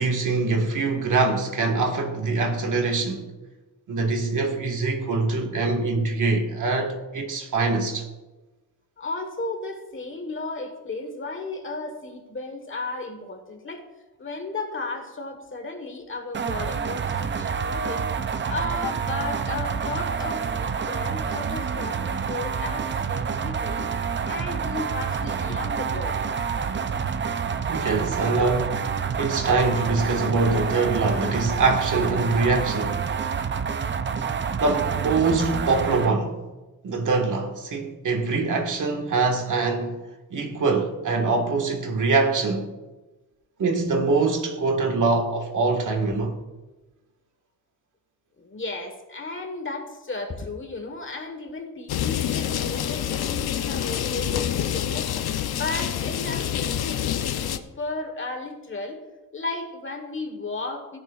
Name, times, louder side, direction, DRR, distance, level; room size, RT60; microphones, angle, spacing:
voice 1, 0.0-3.3 3.9-8.1 27.7-33.2 34.6-36.4 36.8-40.0 40.3-42.7 43.6-46.3, right 3 dB, 55° right, 1.7 m, -24 dB
voice 2, 9.0-13.9 14.2-23.9 24.3-26.2 48.4-59.0 59.3-61.0, left 3 dB, 35° left, 1.4 m, -34 dB
sound 1, 16.3-36.1, right 6 dB, 30° right, 0.5 m, -28 dB
sound 2, 51.9-57.6, left 10 dB, 80° left, 0.7 m, -27 dB
16.5 x 10.5 x 2.4 m
wide cardioid pair, 140°, 37 cm